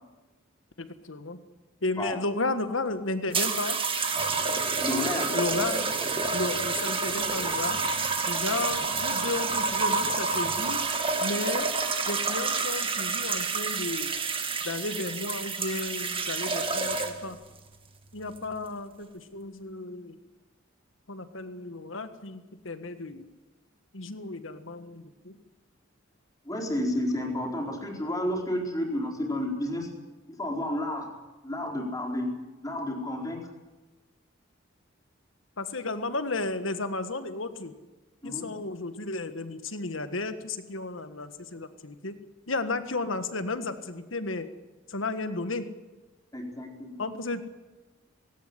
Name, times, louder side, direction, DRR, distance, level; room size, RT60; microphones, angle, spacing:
voice 1, 0.8-1.4 1.8-3.8 5.3-5.9 6.3-7.8 8.3-10.8 11.2-11.7 12.1-14.1 14.6-17.4 18.1-20.2 21.1-23.3 23.9-25.4 35.6-37.7 38.2-42.2 42.5-44.5 44.9-45.7 47.0-47.4, left 2 dB, 75° left, 10 dB, 1.6 m, -33 dB
sound 1, 3.3-17.3 18.2-18.6, right 4 dB, 25° right, 1.8 m, -28 dB
voice 2, 4.8-5.3 26.4-29.9 30.4-31.1 31.4-32.3 32.6-33.5 38.2-38.5 46.3-47.0, left 1 dB, 20° left, 0 dB, 4.4 m, -31 dB
18.5 x 17.5 x 10.0 m, 1.2 s
head